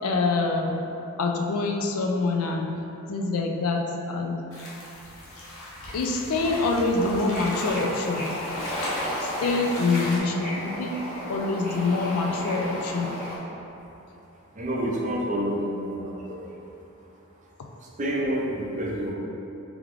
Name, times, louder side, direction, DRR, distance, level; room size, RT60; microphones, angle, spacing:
voice 1, 0.0-0.8 1.2-2.7 3.1-4.4 5.9-8.3 9.2-10.9 11.3-13.1, left 3 dB, 85° left, 2 dB, 0.4 m, -25 dB
sound 1, 4.5-10.2, left 1 dB, 65° left, 0.8 m, -37 dB
Bird / Ocean, 7.0-13.4, equal, 35° left, 0.9 m, -33 dB
voice 2, 14.5-16.7 17.8-19.1, equal, 35° right, -3 dB, 0.6 m, -29 dB
3.5 x 3.4 x 3.5 m, 2.9 s
head